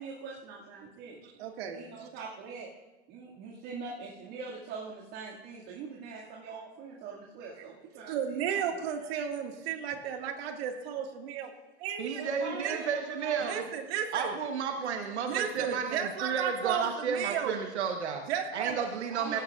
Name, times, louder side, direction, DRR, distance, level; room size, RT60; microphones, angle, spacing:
voice 1, 0.0-1.2 1.7-2.7 3.1-8.9 12.2-13.6 18.5-19.4, right 5 dB, 45° right, -5 dB, 2.4 m, -43 dB
voice 2, 1.2-2.1 8.1-11.5 11.8-12.2 12.6-12.8 13.4-14.3 15.3-17.6 18.3-18.7, right 8 dB, 65° right, 3 dB, 2.1 m, -33 dB
voice 3, 12.0-13.6 14.1-18.2 18.5-19.4, right 6 dB, 90° right, 4 dB, 1.3 m, -32 dB
17.5 x 16.0 x 2.5 m, 1.0 s
hypercardioid pair, 125°, 33 cm